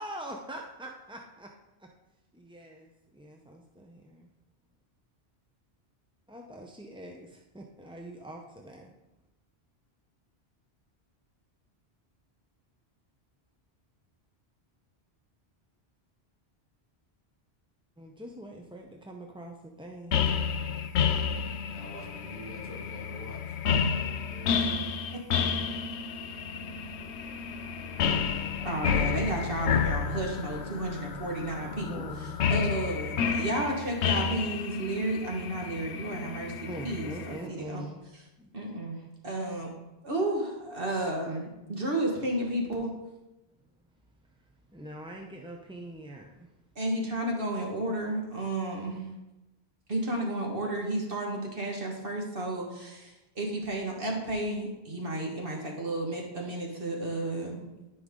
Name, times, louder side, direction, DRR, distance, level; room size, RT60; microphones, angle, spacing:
voice 1, 0.0-1.5 1.8-1.9 2.3-4.3 6.3-8.9 18.0-20.4 31.8-32.5 36.7-38.0 38.4-38.5 44.7-46.5, right 1 dB, 5° right, 1 dB, 0.4 m, -43 dB
sound 1, 20.1-37.4, left 6 dB, 90° left, 0.9 m, -30 dB
voice 2, 21.7-23.7 24.3-24.8, right 1 dB, 10° left, -4 dB, 3.0 m, -46 dB
voice 3, 28.5-36.5 36.8-37.8 38.5-39.7 40.0-42.9 46.7-49.2 49.9-57.7, right 1 dB, 60° right, 0 dB, 1.7 m, -32 dB
13.5 x 5.3 x 3.7 m, 0.98 s
omnidirectional pair, 1.1 m